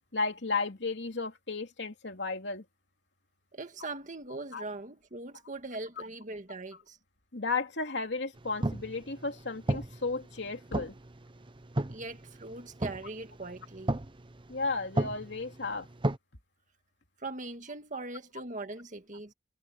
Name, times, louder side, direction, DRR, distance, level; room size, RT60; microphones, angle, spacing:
voice 1, 0.1-2.6 4.5-4.6 6.0-6.1 7.3-10.9 14.5-15.9, left 3 dB, 75° left, 2.8 m, -34 dB
voice 2, 3.5-7.0 11.9-13.9 17.2-19.3, right 2 dB, 45° right, 2.0 m, -41 dB
sound 1, 8.4-16.2, right 1 dB, 30° right, 0.9 m, -36 dB
head